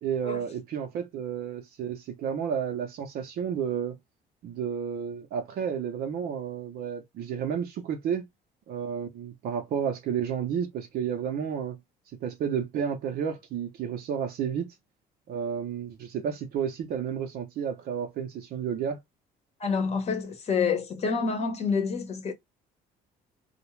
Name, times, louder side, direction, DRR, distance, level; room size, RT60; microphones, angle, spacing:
voice 1, 0.0-4.0 4.4-8.3 8.7-11.8 12.2-14.7 15.3-19.0, right 8 dB, 65° right, 0.6 m, -31 dB
voice 2, 19.6-22.3, left 5 dB, 40° left, 0.8 m, -28 dB
2.3 x 2.0 x 3.0 m
cardioid pair, 110°, 17 cm